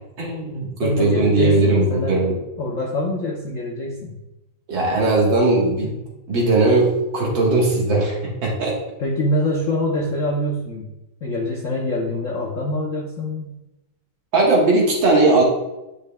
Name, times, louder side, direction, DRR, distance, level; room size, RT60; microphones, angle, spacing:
voice 1, 0.2-2.4 4.7-6.0 6.3-8.7 14.3-15.4, right 2 dB, 65° right, -3 dB, 2.1 m, -18 dB
voice 2, 0.8-2.2 2.6-4.1 5.8-5.9 9.0-10.9 11.2-13.5, left 1 dB, 60° left, -2 dB, 0.8 m, -25 dB
9.0 x 5.4 x 2.3 m, 0.96 s
omnidirectional pair, 2.2 m